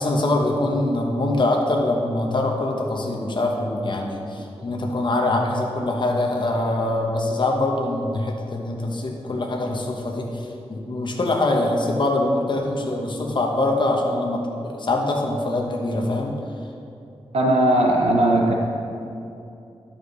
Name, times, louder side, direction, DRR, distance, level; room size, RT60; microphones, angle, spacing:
voice 1, 0.0-16.4, left 2 dB, 50° left, 0 dB, 1.0 m, -23 dB
voice 2, 17.3-18.5, right 1 dB, 80° right, 0 dB, 0.8 m, -18 dB
11.5 x 5.5 x 3.9 m, 2.6 s
wide cardioid pair, 90°, 10 cm